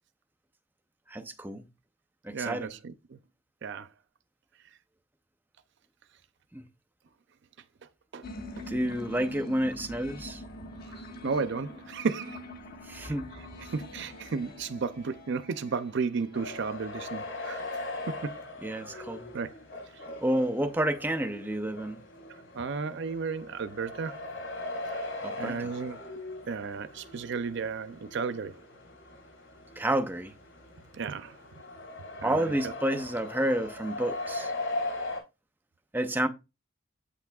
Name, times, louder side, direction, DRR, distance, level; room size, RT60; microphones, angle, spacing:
voice 1, 1.1-1.6 2.2-2.7 6.5-6.6 8.7-10.4 12.8-13.3 18.6-19.3 20.2-22.0 25.2-25.7 29.8-30.3 32.2-34.5 35.9-36.3, right 1 dB, 10° right, 0.7 m, -30 dB
voice 2, 2.3-3.2 3.6-3.9 8.1-8.2 10.9-12.4 13.0-13.2 13.7-17.6 18.2-18.4 18.9-19.0 19.3-19.5 20.0-20.1 22.5-24.3 24.9-25.0 25.4-26.0 26.5-28.6 30.9-31.3 32.2-32.6, right 5 dB, 60° right, 0.5 m, -33 dB
sound 1, 8.2-17.2, left 1 dB, 50° left, 1.4 m, -44 dB
sound 2, 16.3-35.2, left 2 dB, 70° left, 3.7 m, -40 dB
8.3 x 5.8 x 2.3 m
head